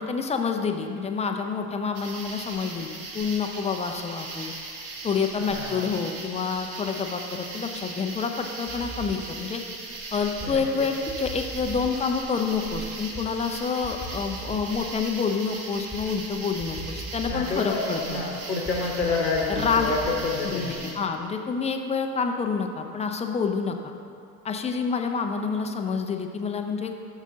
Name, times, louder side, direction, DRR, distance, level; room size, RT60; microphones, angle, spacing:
voice 1, 0.0-4.5 5.0-9.6 10.1-18.2 19.5-19.9 20.4-23.9 24.4-27.1, left 5 dB, 15° left, 5 dB, 0.6 m, -28 dB
sound 1, 1.9-20.9, right 3 dB, 50° right, 1.6 m, -38 dB
voice 2, 5.3-5.8 10.4-10.6 17.3-20.7, left 3 dB, 80° left, 0 dB, 1.3 m, -28 dB
sound 2, 8.7-9.6 9.9-10.8 11.1-13.5 13.8-16.3 16.6-20.2, right 2 dB, 5° right, 0.9 m, -40 dB
14.0 x 7.1 x 2.7 m, 2.4 s
figure-of-eight pair, 70°, 49 cm